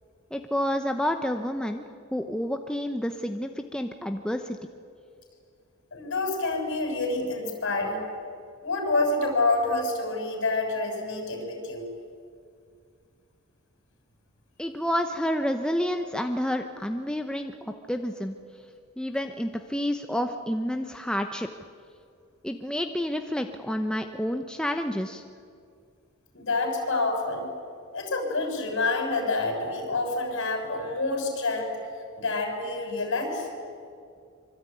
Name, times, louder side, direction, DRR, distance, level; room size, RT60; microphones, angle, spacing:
voice 1, 0.3-1.8 2.1-4.6 14.6-18.4 19.0-21.5 22.4-25.2, equal, 5° left, 5 dB, 0.8 m, -29 dB
voice 2, 5.9-8.1 8.6-11.9 26.3-27.5 27.9-31.8 32.2-33.5, left 3 dB, 60° left, 3 dB, 6.7 m, -27 dB
25.0 x 24.5 x 9.2 m, 2.3 s
head